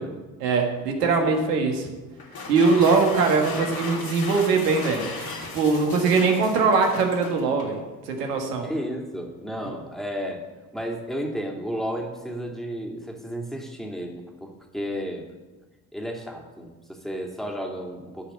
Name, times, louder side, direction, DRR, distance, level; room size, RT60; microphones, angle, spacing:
voice 1, 0.4-1.9 2.5-5.1 5.5-7.8 8.1-8.7, right 4 dB, 90° right, 3 dB, 1.6 m, -21 dB
sound 1, 2.2-7.8, left 3 dB, 50° left, 3.0 m, -36 dB
voice 2, 8.6-10.4 10.7-15.2 15.9-18.3, equal, ahead, 0 dB, 2.9 m, -33 dB
13.0 x 5.2 x 7.7 m, 1.3 s
hypercardioid pair, 50°, 46 cm